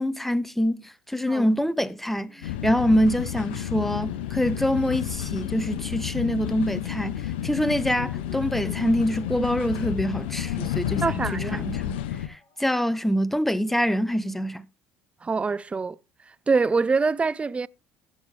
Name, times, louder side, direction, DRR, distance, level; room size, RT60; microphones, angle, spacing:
voice 1, 0.0-11.0 11.3-12.0 12.3-14.6, equal, 5° left, 0.9 m, -25 dB
sound 1, 2.1-13.9, left 2 dB, 20° left, 5.4 m, -51 dB
sound 2, 2.4-12.3, left 12 dB, 85° left, 0.8 m, -31 dB
voice 2, 11.0-11.7 15.2-16.0 16.3-17.7, right 4 dB, 20° right, 0.5 m, -25 dB
16.0 x 6.3 x 3.3 m
supercardioid pair, 80°, 6 cm